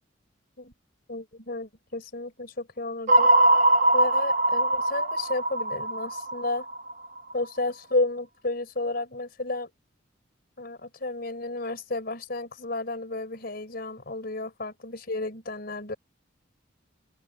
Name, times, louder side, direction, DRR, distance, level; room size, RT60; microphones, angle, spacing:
voice 1, 1.1-3.3 3.9-6.7 7.3-9.7 10.6-16.0, left 2 dB, 50° left, 4.4 m, -32 dB
sound 1, 3.1-7.3, right 2 dB, 40° right, 0.9 m, -22 dB
open air
head